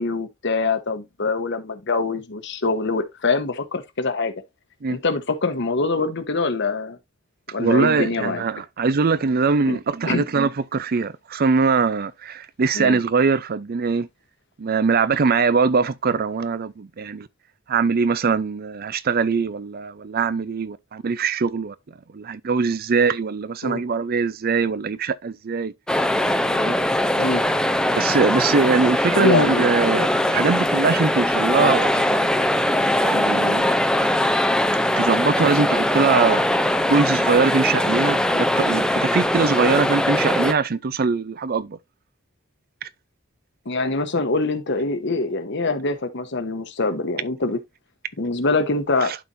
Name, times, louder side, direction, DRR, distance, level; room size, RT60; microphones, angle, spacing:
voice 1, 0.0-4.3 4.9-7.0 7.5-8.4 9.7-9.8 10.1-10.3 12.7-13.0 23.6-23.8 27.2-27.4 29.1-29.7 31.6-31.7 43.6-47.6 48.2-49.1, left 3 dB, 60° left, 1.1 m, -24 dB
voice 2, 7.6-14.1 14.6-17.3 17.7-21.7 22.1-25.7 26.5-26.7 27.9-32.5 33.0-33.7 35.0-36.4 36.8-41.8 49.0-49.2, right 4 dB, 50° right, 0.5 m, -22 dB
sound 1, 25.9-40.5, left 1 dB, 5° left, 0.5 m, -21 dB
11.5 x 4.4 x 2.6 m
head